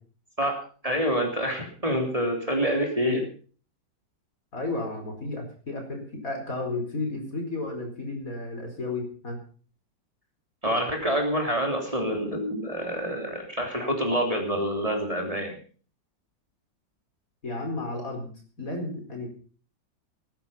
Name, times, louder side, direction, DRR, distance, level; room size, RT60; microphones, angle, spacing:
voice 1, 0.4-3.2 10.6-15.6, equal, 20° right, 2 dB, 3.3 m, -27 dB
voice 2, 4.5-9.4 17.4-18.3 18.6-19.3, left 2 dB, 45° left, 3 dB, 5.0 m, -33 dB
19.0 x 10.5 x 5.6 m, 0.42 s
omnidirectional pair, 2.0 m